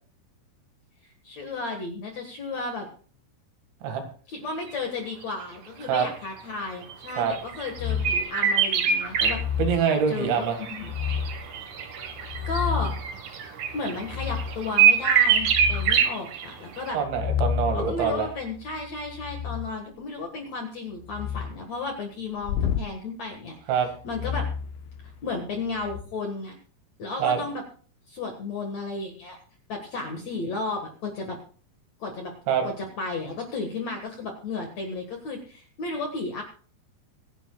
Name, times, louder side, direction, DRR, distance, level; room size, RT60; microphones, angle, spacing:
voice 1, 1.2-2.9 4.3-9.4 10.1-10.9 12.5-12.9 13.7-17.0 17.7-23.6 24.0-24.5 25.2-26.6 27.0-27.6 28.1-29.4 29.7-31.4 32.0-32.3 32.6-36.4, left 3 dB, 55° left, 3 dB, 2.1 m, -33 dB
sound 1, 6.9-9.3 10.0-16.4 16.8-16.9, right 8 dB, 60° right, 2.2 m, -24 dB
sound 2, 7.8-8.3 9.1-9.9 10.8-11.5 12.1-13.1 14.1-14.7 15.1-16.0 17.0-19.7 21.0-21.6 22.4-22.9 24.1-25.3 25.8-26.0, left 7 dB, 80° left, 2.2 m, -30 dB
voice 2, 9.6-10.6 16.9-18.3 23.7-23.9 27.2-27.4 32.5-32.7, right 7 dB, 80° right, 5 dB, 4.2 m, -24 dB
24.0 x 10.5 x 2.3 m, 0.40 s
omnidirectional pair, 5.1 m